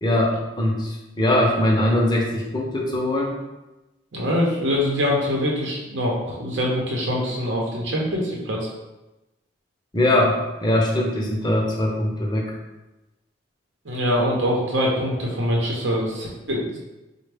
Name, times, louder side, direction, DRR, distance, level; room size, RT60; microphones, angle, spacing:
voice 1, 0.0-3.3 9.9-12.5, left 1 dB, 25° left, -1 dB, 0.6 m, -21 dB
voice 2, 4.1-8.7 13.8-16.8, equal, 75° right, -3 dB, 0.8 m, -24 dB
4.2 x 2.2 x 3.3 m, 1.0 s
head